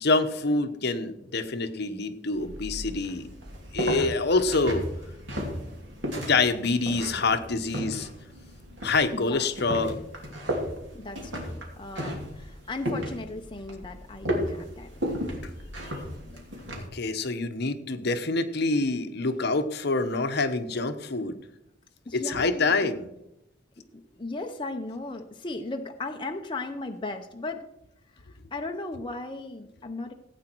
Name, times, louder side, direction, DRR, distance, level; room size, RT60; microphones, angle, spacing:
voice 1, 0.0-3.3 3.7-4.9 6.2-8.1 8.8-10.0 16.9-21.4 22.1-23.1, left 3 dB, 60° left, 9 dB, 1.0 m, -26 dB
sound 1, 2.3-16.9, equal, 65° right, 2.8 m, -35 dB
voice 2, 9.1-9.4 10.9-14.9 16.3-16.4 22.1-22.7 23.8-27.6 28.5-30.1, left 2 dB, 25° left, 4 dB, 0.7 m, -36 dB
16.0 x 8.8 x 4.6 m, 0.83 s
head